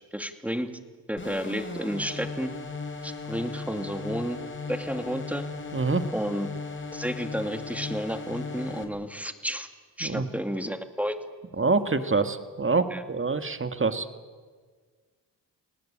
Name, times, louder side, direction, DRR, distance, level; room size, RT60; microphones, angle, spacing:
voice 1, 0.1-0.7 1.1-2.5 3.0-4.4 4.7-5.5 6.1-6.5 6.9-9.7 10.0-11.2 12.9-13.0, equal, 5° right, 8 dB, 2.3 m, -31 dB
sound 1, 1.2-8.8, left 4 dB, 30° left, 4.3 m, -37 dB
voice 2, 5.7-6.1 10.0-10.3 11.6-14.1, right 4 dB, 30° right, 9 dB, 1.9 m, -26 dB
30.0 x 19.0 x 8.9 m, 1.5 s
cardioid pair, 70°, 42 cm